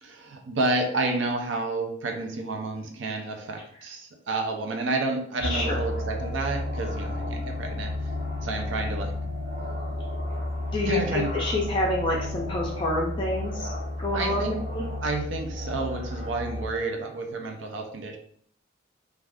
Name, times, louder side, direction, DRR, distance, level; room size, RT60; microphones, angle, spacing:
voice 1, 0.0-8.1 8.4-9.1 10.8-11.3 14.1-14.5 15.0-18.2, right 2 dB, 60° right, 3 dB, 0.5 m, -30 dB
sound 1, 5.4-16.7, left 1 dB, 30° right, 0.8 m, -32 dB
voice 2, 5.5-5.8 10.7-13.7 14.0-14.9, left 1 dB, 25° left, -2 dB, 0.4 m, -28 dB
2.4 x 2.3 x 3.3 m, 0.63 s
head